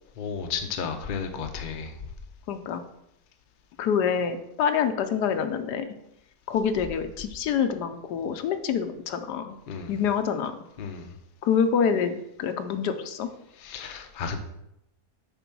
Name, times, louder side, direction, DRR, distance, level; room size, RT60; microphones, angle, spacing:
voice 1, 0.2-1.9 9.7-9.9 10.8-11.1 13.6-14.4, left 6 dB, 45° left, 5 dB, 0.7 m, -33 dB
voice 2, 2.5-2.8 3.8-5.9 6.5-9.6 9.9-10.6 11.4-13.3, left 7 dB, 80° left, 9 dB, 1.3 m, -26 dB
6.9 x 4.5 x 6.0 m, 0.81 s
omnidirectional pair, 1.8 m